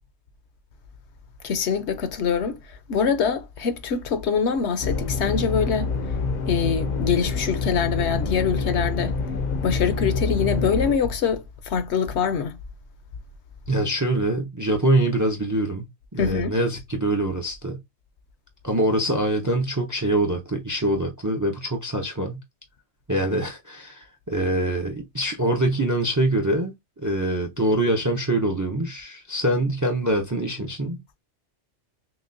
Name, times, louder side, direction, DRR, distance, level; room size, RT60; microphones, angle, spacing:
voice 1, 1.4-5.9 6.5-9.2 9.6-12.6 16.2-16.5, left 6 dB, 70° left, 0.9 m, -24 dB
sound 1, 4.8-11.0, left 4 dB, 50° left, 0.6 m, -26 dB
voice 2, 13.7-17.8 18.6-22.4 23.1-31.0, right 1 dB, 25° right, 0.5 m, -24 dB
5.9 x 2.2 x 2.6 m
omnidirectional pair, 1.2 m